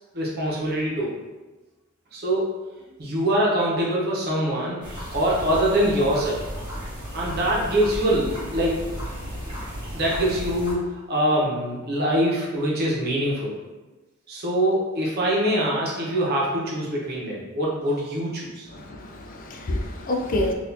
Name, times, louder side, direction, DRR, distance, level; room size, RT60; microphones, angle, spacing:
voice 1, 0.1-1.1 2.1-2.5 3.0-4.8 5.1-6.4 7.1-8.9 9.5-9.6 9.9-13.5 14.3-18.7, right 1 dB, 50° right, -4 dB, 0.9 m, -24 dB
sound 1, 4.8-10.7, equal, 20° right, 1.4 m, -34 dB
voice 2, 18.7-20.5, left 1 dB, 40° left, 3 dB, 0.4 m, -27 dB
4.1 x 2.5 x 2.7 m, 1.2 s
head